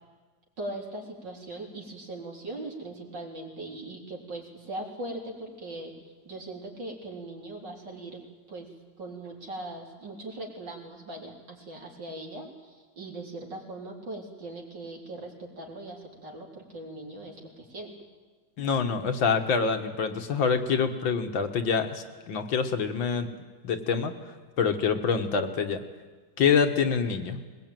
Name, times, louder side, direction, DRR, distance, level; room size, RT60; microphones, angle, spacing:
voice 1, 0.6-8.2 8.5-8.7 9.0-18.0, right 2 dB, 65° right, 0 dB, 4.3 m, -40 dB
voice 2, 18.6-23.3 23.6-24.1 24.6-25.8 26.4-27.4, left 6 dB, 75° left, 6 dB, 2.2 m, -26 dB
22.0 x 20.0 x 9.2 m, 1.4 s
omnidirectional pair, 2.1 m